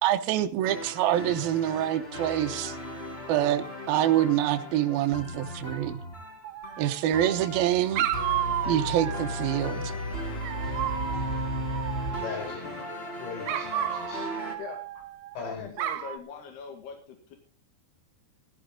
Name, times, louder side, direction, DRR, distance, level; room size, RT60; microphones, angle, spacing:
voice 1, 0.0-2.8 3.3-6.0 6.8-8.1 8.7-9.9, right 12 dB, 70° right, 6 dB, 2.5 m, -26 dB
sound 1, 0.6-14.5, left 1 dB, 20° left, 1.9 m, -36 dB
Dog, 6.4-7.3 8.0-9.6 10.4-12.5 13.5-15.4 15.8-16.2, right 11 dB, 90° right, 1.8 m, -32 dB
voice 2, 12.2-12.8 13.2-14.3 15.3-15.7, left 5 dB, 85° left, 1 dB, 8.3 m, -38 dB
voice 3, 14.6-15.1 15.4-17.4, left 6 dB, 65° left, 2 dB, 3.8 m, -42 dB
16.5 x 13.5 x 3.8 m, 0.36 s
omnidirectional pair, 5.1 m